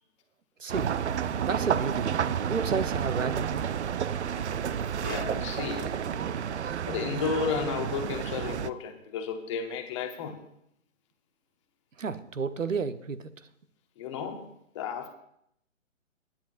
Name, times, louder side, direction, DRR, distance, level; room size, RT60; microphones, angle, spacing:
voice 1, 0.6-0.9 1.4-2.1 2.4-3.5 12.0-13.3, right 5 dB, 80° right, 12 dB, 0.9 m, -31 dB
sound 1, 0.7-8.7, right 8 dB, 60° right, 0.6 m, -30 dB
voice 2, 5.0-6.0 6.9-10.5 14.0-14.5 14.7-15.1, left 6 dB, 25° left, 6 dB, 1.0 m, -33 dB
21.5 x 10.5 x 2.5 m, 0.72 s
figure-of-eight pair, 140°, 39 cm